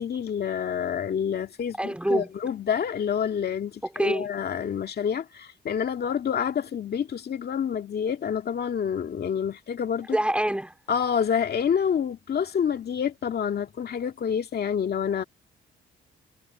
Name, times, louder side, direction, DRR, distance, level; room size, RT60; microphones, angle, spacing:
voice 1, 0.0-10.2 10.9-15.2, left 8 dB, 55° left, 2.2 m, -28 dB
voice 2, 1.8-2.3 3.9-4.3 10.1-10.7, right 1 dB, 5° right, 3.2 m, -25 dB
cardioid pair, 90°, 20 cm